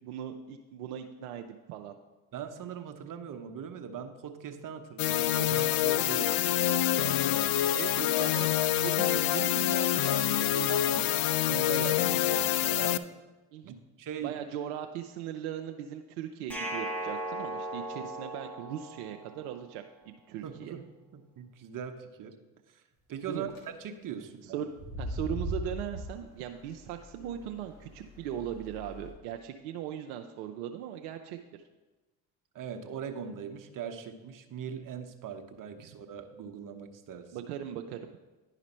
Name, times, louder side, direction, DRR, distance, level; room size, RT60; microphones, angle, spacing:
voice 1, 0.0-2.0 7.7-10.7 13.5-13.8 14.2-20.7 23.3-23.5 24.4-31.6 37.3-38.1, right 10 dB, 75° right, 5 dB, 0.6 m, -39 dB
voice 2, 2.3-7.4 9.3-9.5 10.7-11.0 11.3-13.0 13.6-14.4 20.4-20.8 21.1-22.4 22.7-22.8 23.1-23.5 23.8-24.6 32.5-37.3, right 7 dB, 45° right, 7 dB, 1.0 m, -40 dB
sound 1, 5.0-13.0, left 12 dB, 55° left, 0.5 m, -26 dB
sound 2, 16.5-19.6, right 1 dB, 5° left, 1.2 m, -37 dB
sound 3, 23.2-23.6 24.7-29.1, equal, 80° left, 2.0 m, -40 dB
10.5 x 5.0 x 4.3 m, 1.1 s
hypercardioid pair, 55°, 44 cm